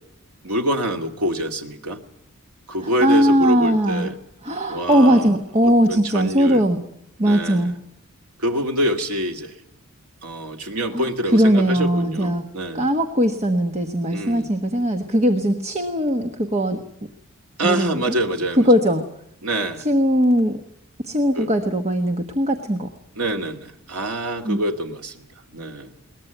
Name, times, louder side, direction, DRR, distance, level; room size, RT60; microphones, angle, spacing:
voice 1, 0.4-2.0 2.7-4.2 4.7-5.3 5.6-6.6 7.2-7.7 8.4-9.6 10.2-12.9 14.1-14.5 17.6-18.7 19.4-19.9 21.3-21.5 23.2-25.2 25.5-25.9, right 1 dB, 80° right, 3 dB, 2.4 m, -26 dB
voice 2, 2.8-4.1 4.4-6.8 7.2-7.7 10.9-11.0 11.3-12.4 12.7-16.8 17.6-18.1 18.6-19.0 19.8-20.6 21.0-22.9 24.4-24.6, equal, 30° right, 6 dB, 1.3 m, -19 dB
22.0 x 19.5 x 9.2 m, 0.75 s
head